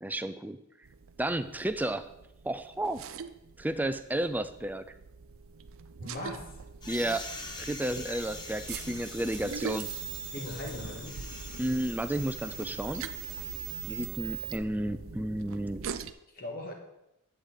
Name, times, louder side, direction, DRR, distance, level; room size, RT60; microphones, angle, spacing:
voice 1, 0.0-0.6 1.2-2.1 2.4-3.0 3.6-4.8 6.9-7.3 7.6-9.9 11.6-13.0 13.8-15.8, right 1 dB, 10° right, 11 dB, 0.4 m, -32 dB
sound 1, 0.8-16.1, right 5 dB, 60° right, 0.5 m, -44 dB
voice 2, 6.0-6.5 10.3-11.2 16.3-16.7, left 1 dB, 40° left, 2 dB, 1.9 m, -39 dB
sound 2, 6.8-14.0, left 2 dB, 20° left, 0.9 m, -45 dB
sound 3, 8.2-14.6, right 11 dB, 75° right, 1.1 m, -42 dB
11.5 x 8.1 x 4.0 m, 0.86 s
head